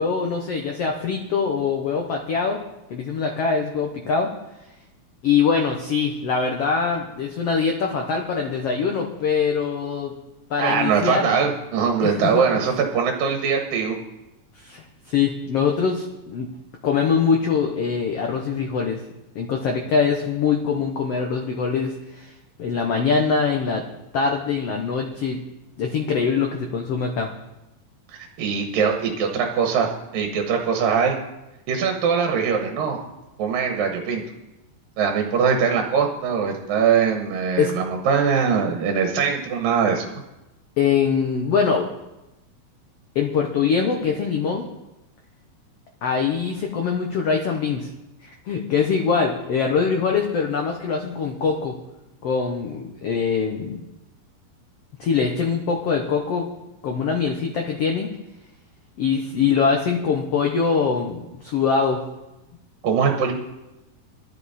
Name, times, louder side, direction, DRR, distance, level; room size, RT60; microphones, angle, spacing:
voice 1, 0.0-2.6 2.9-4.3 5.2-10.1 10.5-11.4 12.0-12.4 14.6-16.5 16.8-19.0 19.3-22.3 22.6-23.8 24.1-25.4 25.8-27.3 37.6-37.7 40.8-41.9 43.1-44.6 46.0-47.9 48.2-51.7 52.2-53.8 55.0-56.5 56.8-58.1 59.0-62.0, left 5 dB, 80° left, 2 dB, 1.3 m, -23 dB
voice 2, 10.6-14.0 28.1-31.2 31.7-33.0 33.4-34.2 35.0-40.2 62.8-63.3, right 6 dB, 70° right, 3 dB, 2.8 m, -22 dB
16.0 x 12.5 x 4.2 m, 0.98 s
omnidirectional pair, 4.3 m